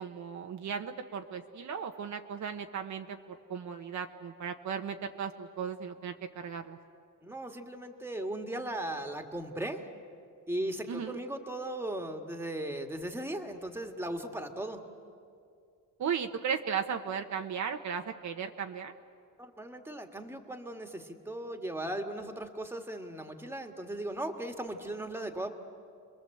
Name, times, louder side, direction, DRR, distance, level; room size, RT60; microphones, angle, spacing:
voice 1, 0.0-6.8 10.9-11.2 16.0-18.9, right 7 dB, 55° right, 5 dB, 1.2 m, -36 dB
voice 2, 7.2-9.8 10.5-14.8 19.4-25.5, right 1 dB, 5° right, 5 dB, 1.8 m, -37 dB
30.0 x 22.5 x 7.8 m, 2.3 s
cardioid pair, 145°, 34 cm